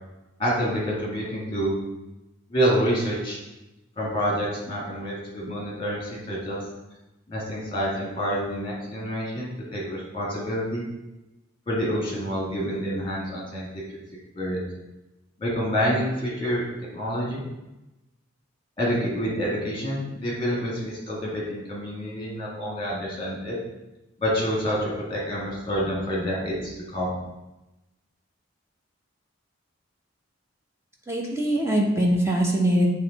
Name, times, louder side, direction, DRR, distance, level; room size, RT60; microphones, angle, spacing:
voice 1, 0.4-1.7 2.5-3.4 4.0-6.6 7.3-10.8 11.7-13.7 14.3-14.6 15.4-16.7 16.9-17.4 18.8-23.6 24.2-27.1, equal, 25° left, -5 dB, 2.0 m, -27 dB
voice 2, 31.1-32.9, right 1 dB, 15° right, -1 dB, 0.9 m, -22 dB
7.7 x 3.2 x 4.0 m, 0.99 s
head